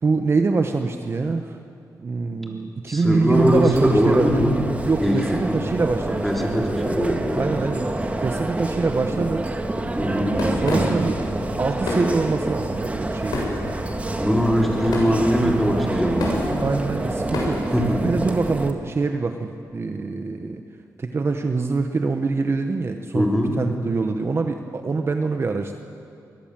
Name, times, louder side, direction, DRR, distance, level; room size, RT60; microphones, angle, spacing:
voice 1, 0.0-1.6 2.0-4.4 4.9-6.7 7.3-7.9 8.2-9.5 10.0-11.2 11.6-13.4 15.4-15.7 16.6-17.6 18.0-20.6 21.0-25.7, right 4 dB, 40° right, 5 dB, 1.2 m, -24 dB
voice 2, 2.9-4.6 5.0-5.6 6.2-7.4 10.0-10.4 14.2-16.7 17.7-18.1 23.1-23.6, equal, ahead, 0 dB, 3.7 m, -21 dB
sound 1, 3.3-18.7, right 2 dB, 20° right, 1.7 m, -27 dB
sound 2, 10.3-17.8, left 2 dB, 80° left, 7.2 m, -32 dB
23.0 x 18.0 x 7.7 m, 2.5 s
cardioid pair, 90°, 7 cm